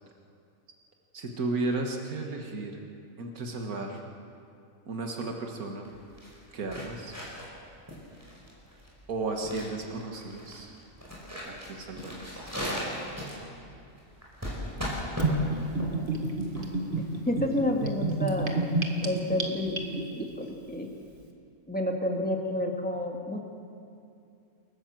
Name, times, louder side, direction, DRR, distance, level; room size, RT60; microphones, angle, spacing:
voice 1, 1.1-2.8 3.2-4.0 4.9-5.9 6.5-7.1 9.1-10.7 11.4-12.5, right 3 dB, 85° right, 2 dB, 2.1 m, -34 dB
sound 1, 5.8-17.5, equal, 10° right, 5.4 m, -38 dB
Gurgling / Bathtub (filling or washing), 15.2-20.2, right 2 dB, 35° right, 1.8 m, -29 dB
voice 2, 17.3-18.6 19.0-20.9 21.7-23.4, left 1 dB, 5° left, 1 dB, 2.1 m, -30 dB
28.5 x 12.5 x 7.6 m, 2.5 s
omnidirectional pair, 1.5 m